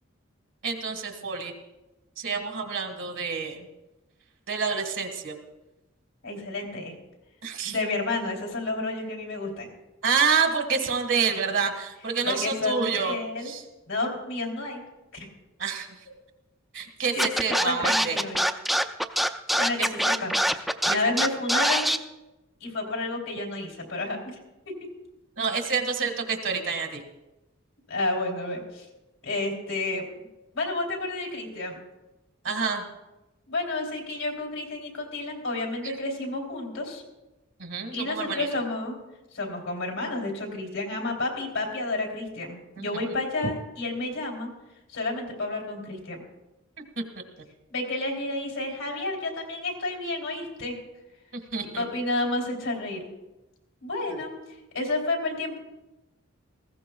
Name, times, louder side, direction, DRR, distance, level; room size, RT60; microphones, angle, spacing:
voice 1, 0.6-1.5 2.2-3.7 4.5-5.3 7.4-7.7 10.0-13.2 13.4-13.6 15.6-15.9 16.7-18.2 19.8-19.9 20.9-21.1 25.4-27.0 32.4-32.8 35.8-35.9 37.6-38.5 42.8-43.0 47.0-47.1 51.3-51.8 54.1-54.2, right 5 dB, 65° right, 5 dB, 1.7 m, -28 dB
voice 2, 6.2-7.0 7.6-9.7 12.2-13.5 13.9-14.8 15.1-15.3 17.1-17.3 17.6-18.5 19.6-22.0 22.6-24.4 24.6-24.7 27.9-28.8 29.2-30.2 30.5-31.8 33.5-37.0 37.9-39.0 39.3-44.5 44.9-46.2 47.7-50.8 51.7-53.1 53.8-54.3 54.7-55.6, left 2 dB, 85° left, -1 dB, 3.3 m, -30 dB
Scratching (performance technique), 17.2-22.0, equal, ahead, 0.4 m, -23 dB
19.5 x 15.5 x 2.3 m, 1.0 s
head